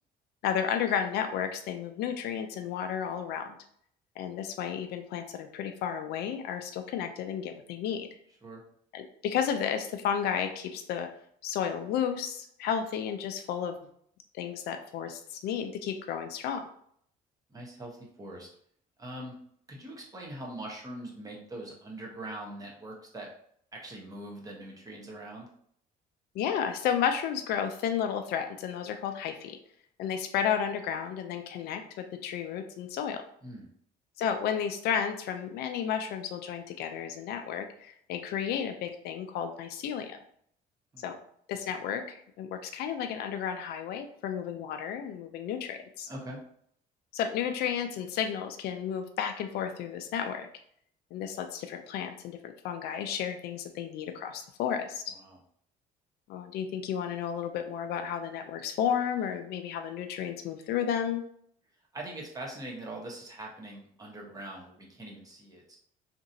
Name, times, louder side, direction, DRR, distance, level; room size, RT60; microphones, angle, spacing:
voice 1, 0.4-3.6 4.2-8.1 8.9-11.1 11.4-13.8 14.3-16.6 26.3-29.6 30.0-33.2 34.2-40.2 41.0-41.2 41.5-46.1 47.1-50.5 51.1-55.1 56.3-61.2, left 8 dB, 70° left, 6 dB, 0.4 m, -32 dB
voice 2, 17.5-18.5 19.0-19.4 19.7-23.3 23.7-25.5 33.4-33.7 40.9-41.0 46.1-46.4 55.1-55.4 61.9-65.8, right 1 dB, 20° right, -2 dB, 0.9 m, -42 dB
2.9 x 2.6 x 2.6 m, 0.65 s
cardioid pair, 110°, 17 cm